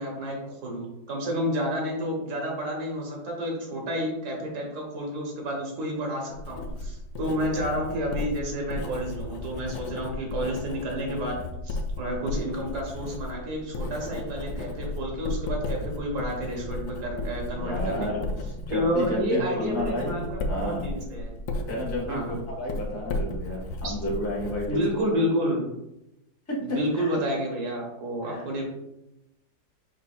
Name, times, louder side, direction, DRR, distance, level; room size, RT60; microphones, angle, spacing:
voice 1, 0.0-18.1 18.7-21.4 22.1-22.4 23.8-23.9 24.7-25.6 26.6-28.6, equal, 65° right, 0 dB, 1.7 m, -30 dB
Writing, 6.3-25.1, left 2 dB, 75° left, 1.2 m, -34 dB
voice 2, 17.6-18.3 18.7-20.1 20.5-20.8 21.7-24.8 26.5-27.2 28.2-28.4, left 1 dB, 10° left, -3 dB, 0.8 m, -31 dB
4.9 x 4.2 x 2.3 m, 0.88 s
omnidirectional pair, 1.9 m